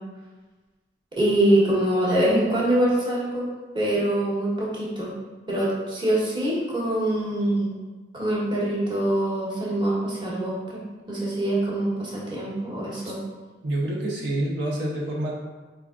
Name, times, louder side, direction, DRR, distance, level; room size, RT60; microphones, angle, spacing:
voice 1, 1.2-3.5 3.7-5.1 5.5-7.7 8.1-10.8 11.1-13.2, right 1 dB, 25° right, -6 dB, 1.1 m, -24 dB
voice 2, 13.6-15.3, right 1 dB, 80° right, -3 dB, 0.7 m, -27 dB
4.4 x 3.7 x 2.4 m, 1.3 s
head